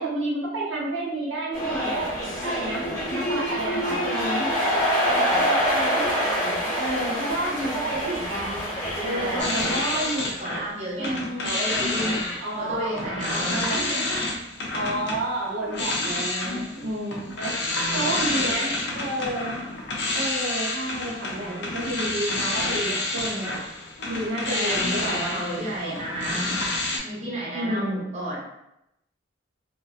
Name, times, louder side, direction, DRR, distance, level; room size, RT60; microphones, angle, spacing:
voice 1, 0.0-2.1 2.4-4.7 5.3-8.6 9.0-10.3 11.0-11.6 12.4-13.8 14.7-17.6 17.9-19.5 20.1-23.6 24.1-26.0 26.4-26.6 27.5-28.0, right 1 dB, 75° right, -4 dB, 0.8 m, -30 dB
sound 1, 1.5-10.3, equal, 15° left, 0.8 m, -26 dB
voice 2, 3.5-4.0 5.0-5.6 9.1-9.5 10.4-14.2 17.8-19.0 24.5-25.0 25.2-26.6 27.0-28.4, right 1 dB, 35° right, -6 dB, 0.7 m, -33 dB
sound 2, 9.4-10.7 11.0-27.0, left 2 dB, 60° left, 0.5 m, -29 dB
2.5 x 2.0 x 2.4 m, 0.84 s
head